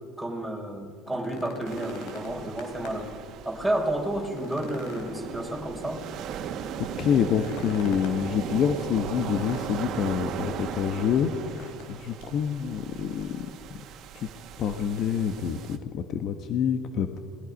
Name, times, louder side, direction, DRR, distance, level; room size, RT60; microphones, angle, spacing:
voice 1, 0.2-3.1 3.4-6.0, right 1 dB, ahead, 3 dB, 4.8 m, -31 dB
sound 1, 0.9-3.2 3.6-3.7 4.1-6.0 7.2-8.3 9.2-10.1 11.3-11.9 12.2-12.3 12.9-13.5 14.6-14.7, left 2 dB, 70° left, 4.4 m, -43 dB
sound 2, 1.6-15.8, right 8 dB, 55° right, 1.8 m, -38 dB
voice 2, 7.0-11.3 11.6-13.8 14.1-14.3 14.6-17.2, left 8 dB, 55° left, 7 dB, 1.3 m, -27 dB
28.0 x 20.0 x 5.4 m, 2.1 s
supercardioid pair, 90°, 0 cm